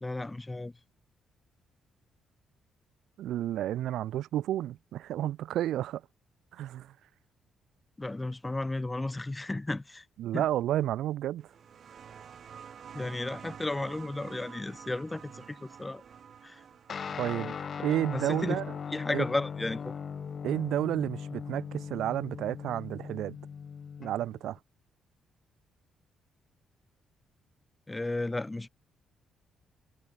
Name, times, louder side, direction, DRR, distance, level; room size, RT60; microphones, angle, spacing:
voice 1, 0.0-0.7 8.0-10.0 10.3-10.5 12.9-16.0 16.4-16.6 18.1-18.6 18.9-20.0 27.9-28.7, left 2 dB, 15° left, 0.8 m, -34 dB
voice 2, 3.2-6.0 6.5-6.9 10.2-11.5 17.2-17.5 17.8-18.6 19.1-19.2 20.4-23.4 24.0-24.6, right 12 dB, 80° right, 0.3 m, -31 dB
sound 1, 11.4-20.7 21.8-21.9, right 7 dB, 55° right, 1.2 m, -50 dB
Guitar, 16.9-24.6, left 6 dB, 45° left, 1.9 m, -39 dB
cardioid pair, 90°, 0 cm